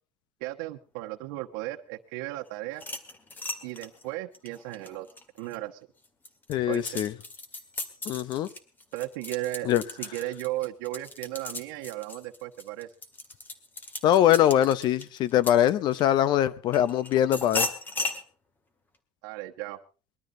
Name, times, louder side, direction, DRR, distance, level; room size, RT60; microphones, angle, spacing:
voice 1, 0.4-2.8 3.6-5.1 5.4-5.9 6.7-6.9 8.9-9.7 10.0-12.9 19.2-19.8, right 17 dB, 90° right, 1 dB, 1.2 m, -35 dB
sound 1, 2.7-5.6 6.0-16.2 16.7-18.2, left 2 dB, 20° left, 1.9 m, -36 dB
voice 2, 6.5-7.1 8.1-8.5 9.6-9.8 14.0-17.7, left 11 dB, 45° left, 17 dB, 0.8 m, -22 dB
21.0 x 12.5 x 3.8 m, 0.35 s
cardioid pair, 155°, 10 cm